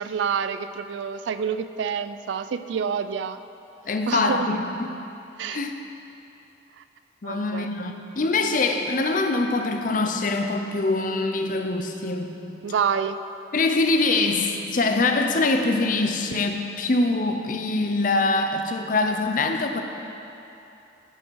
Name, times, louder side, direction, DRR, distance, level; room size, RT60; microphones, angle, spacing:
voice 1, 0.0-3.4 4.1-4.5 5.4-5.6 6.8-6.9 7.2-7.7 12.6-13.2, right 7 dB, 75° right, 12 dB, 0.3 m, -28 dB
voice 2, 3.9-4.9 5.5-5.7 7.2-12.4 13.5-19.8, left 3 dB, 45° left, 5 dB, 0.5 m, -24 dB
11.0 x 5.6 x 4.6 m, 2.9 s
head